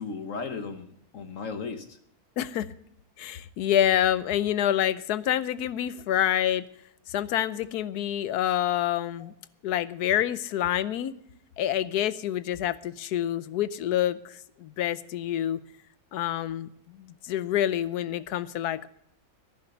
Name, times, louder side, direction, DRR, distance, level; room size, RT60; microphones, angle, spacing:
voice 1, 0.0-2.0 9.2-9.3, left 4 dB, 55° left, 9 dB, 1.3 m, -36 dB
voice 2, 2.4-2.7 3.2-6.7 7.1-9.3 9.6-11.1 11.6-15.6 16.1-18.9, left 11 dB, 80° left, 17 dB, 1.3 m, -27 dB
11.0 x 11.0 x 6.9 m, 0.73 s
omnidirectional pair, 1.6 m